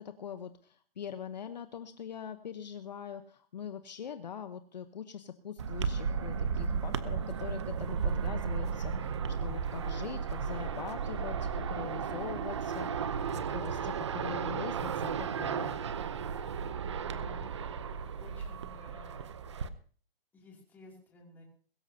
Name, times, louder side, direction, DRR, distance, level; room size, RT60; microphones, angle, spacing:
voice 1, 0.0-15.8, left 8 dB, 45° left, 9 dB, 1.0 m, -43 dB
sound 1, 5.6-19.7, right 6 dB, 30° right, 0.7 m, -34 dB
voice 2, 17.0-17.4 18.2-19.2 20.3-21.4, left 3 dB, 5° left, -2 dB, 2.7 m, -54 dB
22.0 x 13.0 x 2.8 m, 0.43 s
hypercardioid pair, 175°, 29 cm